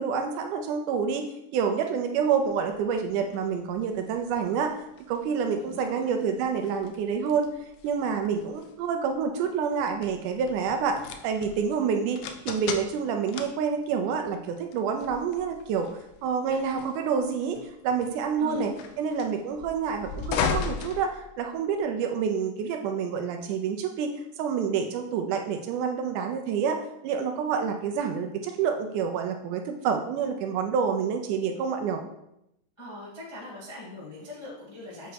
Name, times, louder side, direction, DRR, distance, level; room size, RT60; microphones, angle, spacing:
voice 1, 0.0-18.7 19.0-26.8 27.0-32.0, right 6 dB, 80° right, 4 dB, 1.9 m, -28 dB
sound 1, 2.4-21.8, left 6 dB, 80° left, 2.1 m, -38 dB
voice 2, 5.6-6.1 16.7-16.8 18.4-18.7 32.8-35.1, left 1 dB, 20° left, -8 dB, 0.8 m, -41 dB
8.1 x 3.1 x 4.6 m, 0.82 s
omnidirectional pair, 3.8 m